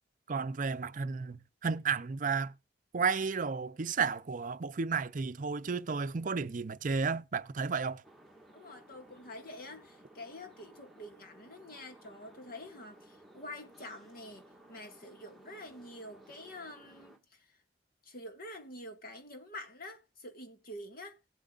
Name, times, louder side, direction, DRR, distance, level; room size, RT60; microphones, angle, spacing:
voice 1, 0.3-2.5 2.9-8.0, right 5 dB, 50° right, 0.6 m, -32 dB
sound 1, 8.0-17.2, right 1 dB, ahead, 1.8 m, -58 dB
voice 2, 8.5-17.6 18.0-21.2, left 1 dB, 55° left, 1.9 m, -47 dB
18.0 x 7.7 x 2.5 m
head